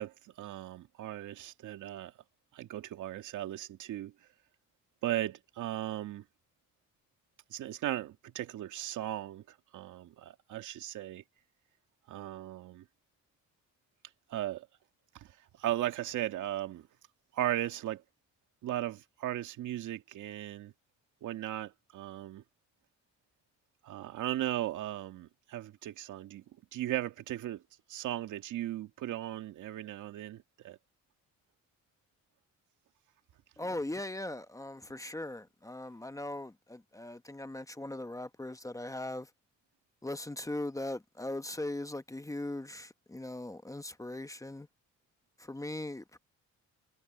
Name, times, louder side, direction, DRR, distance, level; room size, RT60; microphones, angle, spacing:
voice 1, 0.0-2.1 2.5-4.1 5.0-6.2 7.5-11.2 12.1-12.9 14.3-14.7 15.1-16.9 17.3-18.0 18.6-20.7 21.2-22.4 23.8-26.4 26.7-27.6 27.9-30.8, right 13 dB, 80° right, 2.2 m, -37 dB
voice 2, 33.6-39.3 40.0-44.7 45.4-46.2, left 1 dB, 10° left, 1.0 m, -39 dB
cardioid pair, 90°, 30 cm